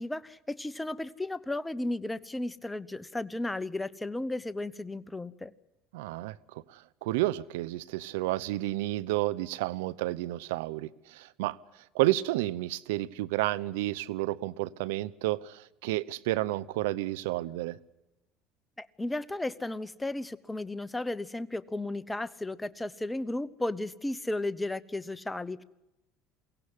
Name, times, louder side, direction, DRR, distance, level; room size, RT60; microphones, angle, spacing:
voice 1, 0.0-5.5 18.8-25.6, left 2 dB, 10° left, 0.9 m, -34 dB
voice 2, 5.9-11.6 11.9-17.8, right 17 dB, 85° right, 0.8 m, -31 dB
22.5 x 17.0 x 9.8 m
supercardioid pair, 95°, 0 cm